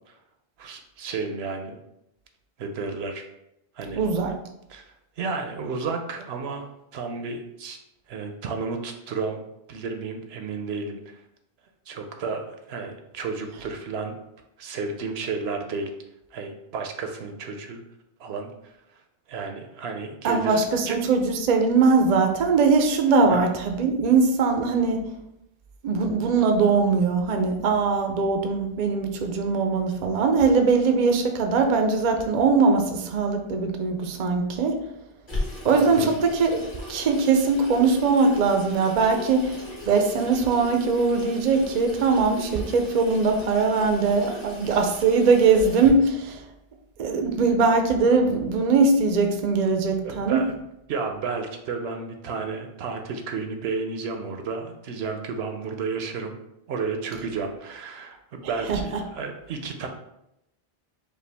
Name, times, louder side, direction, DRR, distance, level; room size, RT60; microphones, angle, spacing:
voice 1, 0.6-1.8 2.6-3.2 3.7-4.0 4.7-6.6 6.9-7.8 8.1-9.4 9.7-11.2 11.9-14.2 14.6-15.9 16.3-17.8 18.2-18.7 19.3-20.6 20.9-21.0 23.3-23.5 35.7-36.1 50.0-50.5 50.9-56.4 56.7-59.9, right 4 dB, 75° right, 5 dB, 0.8 m, -32 dB
voice 2, 4.0-4.3 20.2-25.1 25.8-34.8 35.6-36.6 36.9-46.4 47.0-50.4 58.4-58.8, right 4 dB, 50° right, 5 dB, 0.6 m, -21 dB
Water tap faucet / Sink (filling or washing), 35.3-45.9, left 2 dB, 25° left, 1.2 m, -38 dB
5.3 x 2.3 x 3.4 m, 0.83 s
omnidirectional pair, 1.1 m